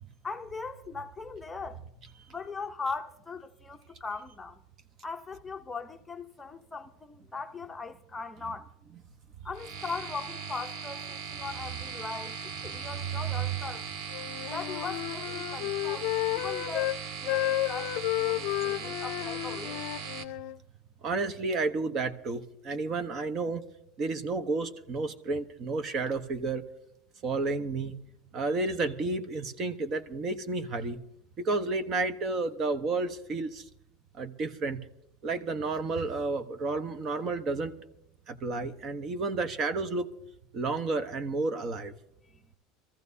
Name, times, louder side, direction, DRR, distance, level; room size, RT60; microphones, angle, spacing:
voice 1, 0.2-1.8 2.3-4.6 5.0-8.7 9.4-12.4 12.6-13.9 14.5-19.8 42.2-42.4, left 4 dB, 15° left, 0.7 m, -39 dB
sound 1, 9.5-20.2, right 6 dB, 65° right, 1.3 m, -39 dB
Wind instrument woodwind instrument, 14.1-17.0 17.3-20.6, left 17 dB, 65° left, 0.5 m, -32 dB
voice 2, 21.0-23.6 24.0-26.6 27.2-27.9 28.3-31.0 31.4-33.6 34.2-34.8 35.2-37.8 38.3-40.1 40.5-41.9, right 3 dB, 35° right, 1.0 m, -31 dB
24.5 x 14.5 x 2.7 m
supercardioid pair, 135°, 0 cm